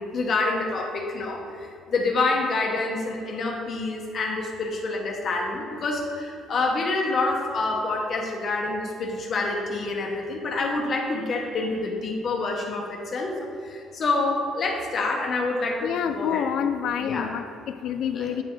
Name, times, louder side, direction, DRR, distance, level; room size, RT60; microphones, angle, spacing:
voice 1, 0.0-1.4 1.9-16.5 17.0-17.3 18.1-18.3, left 3 dB, 35° left, 1 dB, 1.0 m, -27 dB
voice 2, 15.8-18.4, left 8 dB, 60° left, 10 dB, 0.4 m, -28 dB
9.3 x 4.9 x 3.8 m, 2.4 s
cardioid pair, 165°, 0 cm